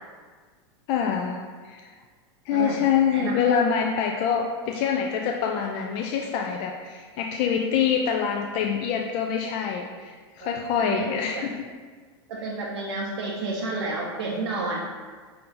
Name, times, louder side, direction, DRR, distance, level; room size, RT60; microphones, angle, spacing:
voice 1, 0.9-1.9 2.5-11.6, left 7 dB, 50° left, 2 dB, 0.4 m, -25 dB
voice 2, 2.5-2.8 3.1-3.4 10.4-10.5 10.9-11.4 12.3-14.8, right 3 dB, 85° right, -2 dB, 0.5 m, -30 dB
4.4 x 2.6 x 3.8 m, 1.5 s
hypercardioid pair, 115°, 14 cm